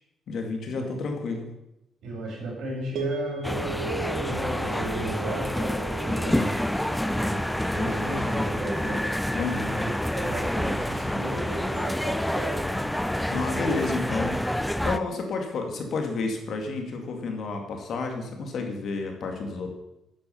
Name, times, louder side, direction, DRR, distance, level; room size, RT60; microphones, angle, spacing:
voice 1, 0.3-1.5 6.2-6.5 9.3-9.8 13.3-14.4 14.8-19.7, left 3 dB, 45° left, 3 dB, 2.3 m, -30 dB
voice 2, 2.0-6.5 7.2-7.4 7.7-9.0 9.7-12.7, right 1 dB, 60° right, -2 dB, 6.5 m, -34 dB
sound 1, 2.9-11.2, right 6 dB, 85° right, 3.1 m, -39 dB
sound 2, 3.4-15.0, left 1 dB, 5° left, 0.4 m, -28 dB
12.5 x 8.9 x 7.2 m, 0.90 s
cardioid pair, 180°, 0 cm